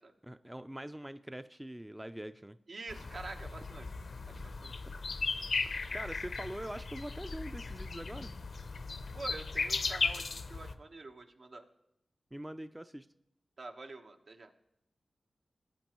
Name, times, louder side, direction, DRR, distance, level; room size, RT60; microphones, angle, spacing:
voice 1, 0.2-2.6 5.5-8.3 12.3-13.1, right 1 dB, 15° right, 11 dB, 0.4 m, -44 dB
voice 2, 2.7-3.9 4.3-4.7 9.1-11.6 13.6-14.5, right 3 dB, 70° right, 4 dB, 1.1 m, -46 dB
sound 1, 2.9-10.7, left 4 dB, 70° left, 0.6 m, -37 dB
17.5 x 8.3 x 3.0 m, 0.81 s
cardioid pair, 50°, 0 cm